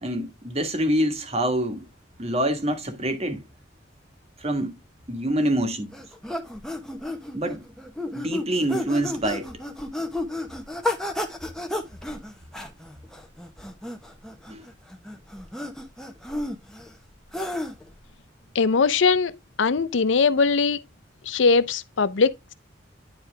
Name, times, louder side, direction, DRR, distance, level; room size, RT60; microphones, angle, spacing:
voice 1, 0.0-1.9 2.2-3.4 4.4-4.8 5.1-5.9 7.3-7.6 8.1-9.5 14.5-14.6, right 1 dB, 35° right, 1.6 m, -26 dB
sound 1, 5.9-17.9, left 1 dB, 5° left, 1.1 m, -32 dB
voice 2, 18.5-20.8 21.3-22.5, left 4 dB, 80° left, 0.6 m, -21 dB
10.0 x 4.4 x 3.4 m
head